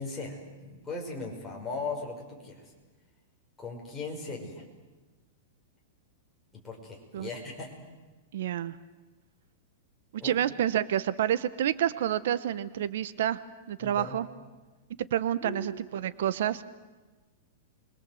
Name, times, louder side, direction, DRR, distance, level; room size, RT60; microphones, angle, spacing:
voice 1, 0.0-2.7 3.6-4.6 6.6-7.7 10.2-10.4 13.8-14.2 15.4-15.7, left 3 dB, 10° left, -2 dB, 5.4 m, -38 dB
voice 2, 8.3-8.8 10.2-13.4 13.7-14.3 15.1-16.6, right 11 dB, 65° right, 15 dB, 0.9 m, -28 dB
30.0 x 23.0 x 7.9 m, 1.2 s
supercardioid pair, 165°, 0 cm